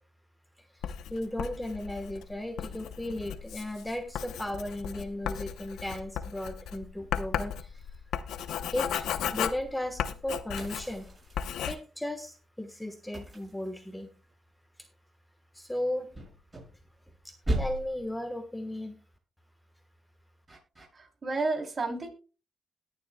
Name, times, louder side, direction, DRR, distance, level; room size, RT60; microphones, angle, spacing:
Writing, 0.8-11.1 11.3-11.7, left 9 dB, 85° left, 0.7 m, -35 dB
voice 1, 0.9-7.9 8.7-9.1 9.3-11.1 11.7-14.1 15.5-16.1 17.2-19.0, left 1 dB, 5° left, 7 dB, 1.2 m, -36 dB
sound 1, 10.6-11.9 13.1-14.3 16.1-17.1 17.4-18.1 20.5-20.9, right 1 dB, 25° right, 6.9 m, -36 dB
voice 2, 20.9-22.1, right 3 dB, 40° right, 3 dB, 3.2 m, -31 dB
21.0 x 7.1 x 2.2 m, 0.34 s
cardioid pair, 80°, 0 cm